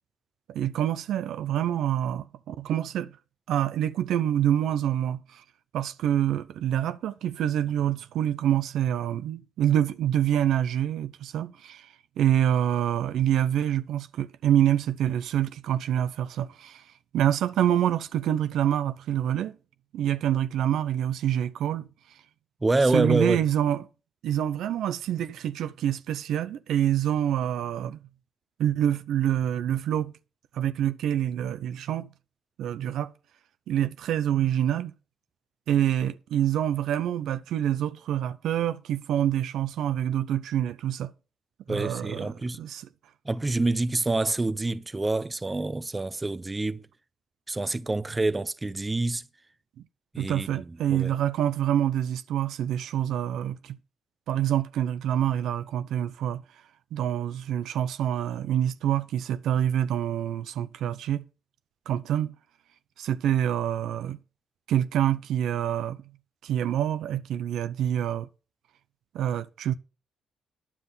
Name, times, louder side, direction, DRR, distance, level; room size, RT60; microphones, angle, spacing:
voice 1, 0.5-3.1 3.5-5.4 5.7-11.9 12.2-16.8 17.1-19.6 19.9-21.9 22.9-23.8 24.2-28.0 28.6-30.1 30.5-32.1 32.6-33.1 33.7-34.9 35.7-41.1 41.7-42.9 50.2-53.8 54.3-56.4 56.9-61.2 61.9-62.3 63.0-64.2 64.7-66.0 66.4-68.3 69.1-69.7, right 10 dB, 80° right, 0.6 m, -26 dB
voice 2, 22.6-23.4 41.7-42.6 43.2-46.9 47.5-49.2 50.1-51.1, right 2 dB, 20° right, 0.6 m, -27 dB
9.9 x 7.2 x 5.5 m
cardioid pair, 90°, 0 cm